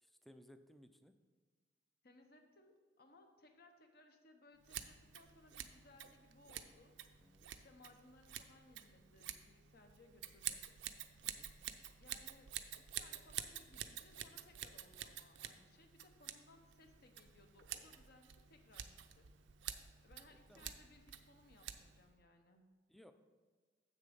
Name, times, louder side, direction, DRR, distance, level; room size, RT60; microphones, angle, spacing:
voice 1, 0.0-1.1 7.2-7.5 11.2-11.5 20.5-20.7 22.9-23.1, equal, ahead, 9 dB, 0.4 m, -62 dB
voice 2, 2.0-7.0 7.6-10.6 12.0-19.3 20.0-22.7, left 2 dB, 55° left, 5 dB, 0.9 m, -65 dB
Scissors, 4.6-22.1, right 11 dB, 75° right, 0.5 m, -50 dB
7.5 x 6.6 x 5.1 m, 1.4 s
head